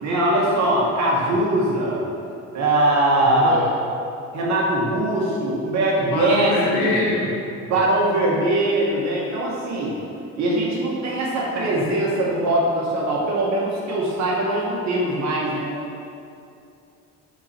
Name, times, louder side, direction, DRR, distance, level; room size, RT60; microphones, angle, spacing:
voice 1, 0.0-2.1 2.5-3.6 4.3-7.1 7.6-9.9 10.4-15.8, right 1 dB, 65° right, -4 dB, 1.9 m, -21 dB
voice 2, 3.2-3.7 6.0-7.4, left 3 dB, 75° left, -4 dB, 1.6 m, -24 dB
11.0 x 4.5 x 4.6 m, 2.6 s
cardioid pair, 105°, 30 cm